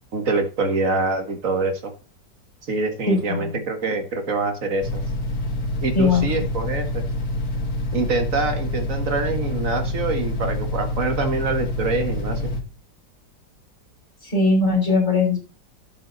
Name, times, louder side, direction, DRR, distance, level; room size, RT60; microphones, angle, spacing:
voice 1, 0.1-1.8 2.7-5.0 5.8-7.0 7.9-12.5, right 3 dB, 45° right, 7 dB, 2.1 m, -25 dB
voice 2, 3.1-3.6 5.9-6.5 14.2-15.4, left 3 dB, 35° left, 0 dB, 6.4 m, -20 dB
sound 1, 4.8-12.6, left 1 dB, 55° left, 2.4 m, -27 dB
12.0 x 8.6 x 4.1 m, 0.33 s
omnidirectional pair, 1.9 m